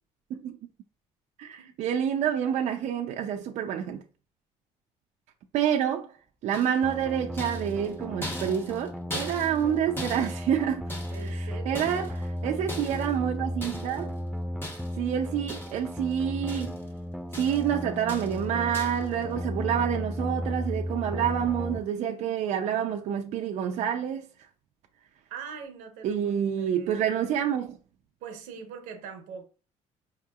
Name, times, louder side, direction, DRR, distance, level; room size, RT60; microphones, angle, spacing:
voice 1, 1.4-4.0 5.5-6.1 6.4-10.9 11.2-12.0 12.4-14.1 15.0-16.8 17.4-24.3 26.0-27.8, right 9 dB, 65° right, 0.4 m, -28 dB
sound 1, 6.5-7.0 7.4-9.7 10.0-11.4 11.7-12.3 12.7-13.2 13.6-14.0 14.6-15.1 15.5-16.9 17.3-17.7 18.1-18.4 18.7-19.1, left 1 dB, 15° left, 1.0 m, -40 dB
sound 2, 6.8-21.8, equal, ahead, 0.3 m, -35 dB
voice 2, 11.1-12.0 25.3-26.3 26.6-27.1 28.2-29.4, right 7 dB, 90° right, 0.8 m, -42 dB
4.8 x 2.7 x 2.3 m
cardioid pair, 100°, 13 cm